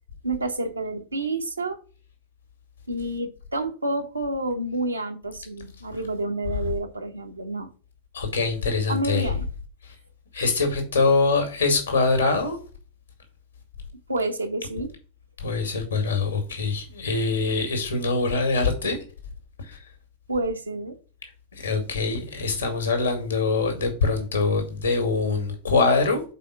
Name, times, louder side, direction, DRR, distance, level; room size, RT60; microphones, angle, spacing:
voice 1, 0.2-1.8 2.9-7.7 8.9-9.4 14.1-14.9 20.3-21.0, right 2 dB, 80° right, 1.0 m, -29 dB
voice 2, 8.1-9.3 10.3-12.6 15.4-19.0 19.7-19.8 21.6-26.2, left 4 dB, 75° left, 1.9 m, -23 dB
5.4 x 4.2 x 5.5 m
figure-of-eight pair, 90°, 0 cm